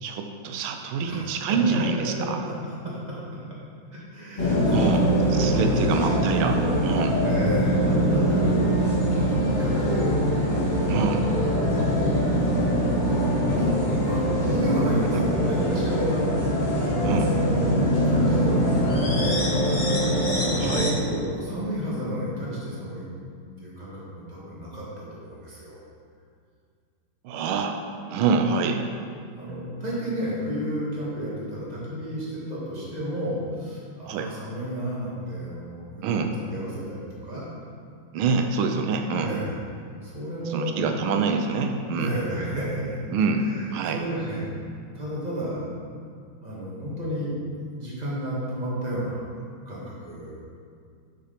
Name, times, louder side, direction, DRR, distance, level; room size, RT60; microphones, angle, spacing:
voice 1, 0.0-2.4 4.7-7.2 10.9-11.2 15.1-15.2 17.0-17.3 20.6-20.9 27.2-27.8 28.1-28.8 34.1-34.3 36.0-36.3 38.1-39.3 40.5-42.1 43.1-43.4 43.7-44.0, right 5 dB, 90° right, 5 dB, 1.5 m, -26 dB
voice 2, 1.0-3.2 3.9-4.9 5.3-5.8 7.2-8.7 9.3-10.2 11.1-11.9 13.0-16.3 16.7-17.7 18.0-19.5 20.8-23.1 23.6-25.8 29.3-37.4 39.2-39.5 40.0-40.9 42.0-43.0 43.4-44.5 44.9-45.6 46.4-47.3 47.7-49.2 49.7-50.4, equal, 20° right, -7 dB, 2.0 m, -32 dB
sound 1, 4.4-20.9, equal, 30° left, 1.1 m, -23 dB
6.4 x 6.1 x 5.8 m, 2.3 s
omnidirectional pair, 2.2 m